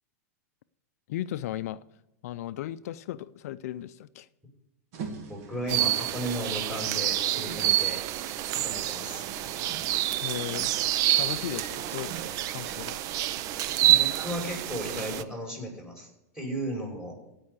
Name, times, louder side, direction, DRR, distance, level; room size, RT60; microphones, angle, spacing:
voice 1, 1.1-1.8 2.2-4.3 10.2-10.7 11.2-13.0, left 13 dB, 65° left, 14 dB, 0.5 m, -36 dB
sound 1, 4.9-15.0, right 5 dB, 60° right, 2.0 m, -45 dB
voice 2, 5.3-8.0 8.5-9.3 13.9-16.1 16.3-17.2, equal, 5° right, -1 dB, 5.6 m, -35 dB
sound 2, 5.7-15.2, right 14 dB, 45° right, 0.5 m, -28 dB
16.0 x 5.6 x 8.1 m, 0.91 s
hypercardioid pair, 110°, 9 cm